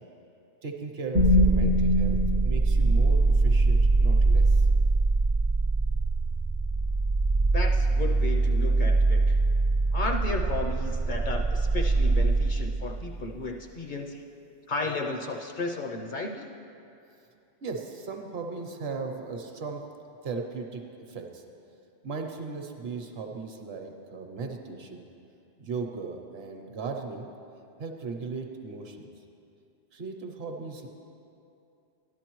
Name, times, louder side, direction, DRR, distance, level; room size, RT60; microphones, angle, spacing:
voice 1, 0.6-2.2 2.4-4.7 17.6-19.9 20.2-21.4 22.0-25.0 25.6-27.3 27.8-29.1 29.9-30.9, right 4 dB, 65° right, 3 dB, 1.0 m, -37 dB
sound 1, 1.1-13.3, right 2 dB, 40° right, 0.4 m, -23 dB
voice 2, 7.5-9.4 9.9-14.2 14.7-16.5, left 3 dB, 55° left, 2 dB, 0.7 m, -34 dB
13.0 x 10.5 x 3.0 m, 2.7 s
omnidirectional pair, 1.2 m